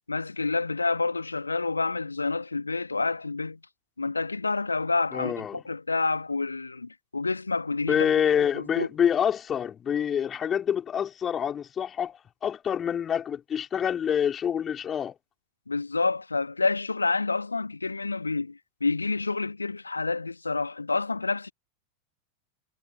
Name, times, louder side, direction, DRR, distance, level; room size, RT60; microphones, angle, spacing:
voice 1, 0.1-3.6 4.0-8.1 8.5-8.9 15.7-21.5, left 3 dB, 80° left, 2.3 m, -28 dB
voice 2, 5.1-5.6 7.9-12.2 12.4-15.1, left 8 dB, 25° left, 4.9 m, -26 dB
figure-of-eight pair, 90°, 0 cm